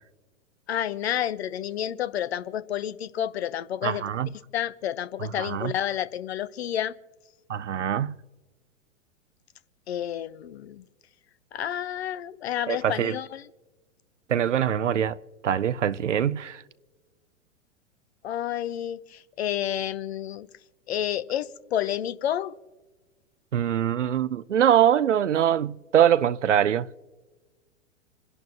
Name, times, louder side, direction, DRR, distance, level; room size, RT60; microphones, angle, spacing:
voice 1, 0.7-4.2 4.5-6.9 9.9-10.8 11.5-13.5 18.2-20.5 20.9-22.5, left 11 dB, 55° left, 0.8 m, -30 dB
voice 2, 3.8-4.3 5.4-5.7 7.5-8.2 12.7-13.2 14.3-15.2 15.4-16.6 23.5-26.9, right 10 dB, 70° right, 0.7 m, -23 dB
28.0 x 11.0 x 2.9 m
figure-of-eight pair, 100°, 37 cm